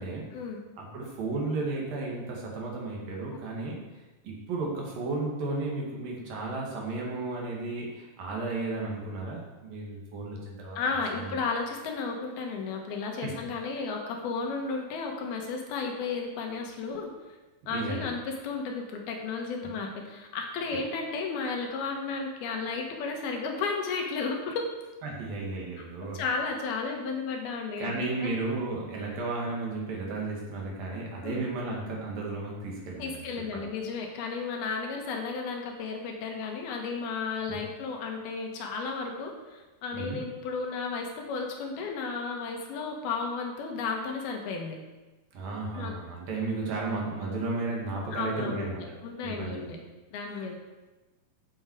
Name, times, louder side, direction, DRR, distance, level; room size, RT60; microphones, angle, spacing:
voice 1, 0.8-3.8 4.2-11.3 13.2-13.3 17.7-18.1 25.0-26.2 27.8-33.2 33.5-33.7 37.5-37.6 39.9-40.2 45.3-48.8 49.2-49.7 50.3-50.5, right 3 dB, 70° right, -2 dB, 3.8 m, -34 dB
voice 2, 10.8-17.1 17.7-24.7 25.8-28.3 31.2-31.5 33.0-44.8 45.7-45.9 48.1-49.8 50.1-50.5, left 4 dB, 85° left, 2 dB, 3.4 m, -33 dB
14.0 x 7.3 x 4.8 m, 1.2 s
omnidirectional pair, 4.3 m